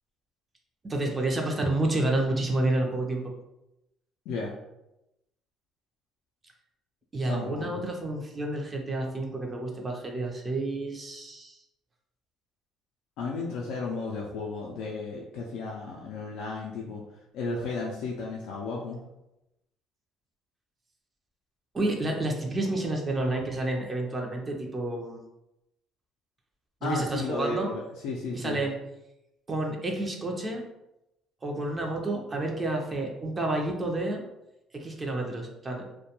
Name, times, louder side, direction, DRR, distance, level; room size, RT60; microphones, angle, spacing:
voice 1, 0.8-3.3 7.1-11.6 21.7-25.2 26.8-27.7 28.3-28.8 29.5-30.6 31.4-34.2 34.7-35.9, right 2 dB, 30° right, 1 dB, 0.5 m, -30 dB
voice 2, 7.2-7.8 13.2-17.0 17.3-19.0 26.8-28.6, left 3 dB, 75° left, -2 dB, 0.3 m, -34 dB
2.2 x 2.2 x 2.8 m, 0.90 s
supercardioid pair, 85°, 0 cm